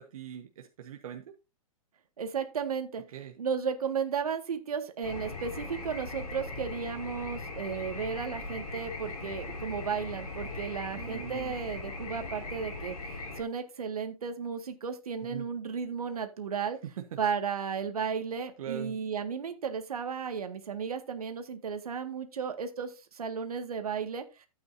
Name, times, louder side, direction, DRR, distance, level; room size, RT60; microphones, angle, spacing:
voice 1, 0.0-1.3 3.1-3.3 10.9-11.6 15.3-15.5 17.0-17.1 18.6-19.0, right 10 dB, 70° right, 3 dB, 1.4 m, -41 dB
voice 2, 2.2-3.0 3.4-16.8 17.2-24.2, right 6 dB, 85° right, 7 dB, 1.9 m, -34 dB
sound 1, 5.0-13.4, left 3 dB, 90° left, 4.0 m, -39 dB
12.5 x 8.7 x 2.7 m, 0.27 s
hypercardioid pair, 130°, 19 cm